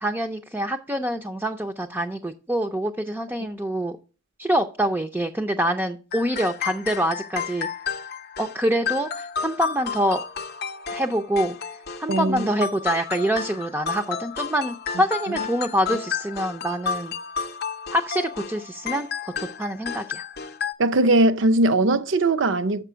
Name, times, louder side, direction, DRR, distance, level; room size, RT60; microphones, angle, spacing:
voice 1, 0.0-4.0 4.4-7.7 8.4-10.2 10.9-17.1 17.9-20.2, equal, 10° right, 0.4 m, -26 dB
sound 1, 6.1-20.7, left 6 dB, 50° left, 0.6 m, -32 dB
voice 2, 12.1-12.5 15.3-15.4 20.8-22.8, right 2 dB, 60° right, 0.6 m, -20 dB
6.9 x 6.0 x 5.5 m
head